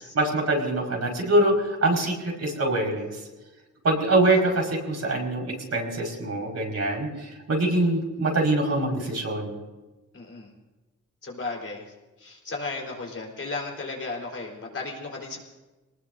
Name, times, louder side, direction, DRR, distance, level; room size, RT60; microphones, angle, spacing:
voice 1, 0.1-3.2 3.8-9.6, right 2 dB, 60° right, -1 dB, 5.2 m, -24 dB
voice 2, 10.1-10.5 11.2-11.9 12.2-15.4, left 3 dB, 50° left, -1 dB, 4.3 m, -35 dB
26.5 x 19.5 x 2.7 m, 1.1 s
wide cardioid pair, 100°, 30 cm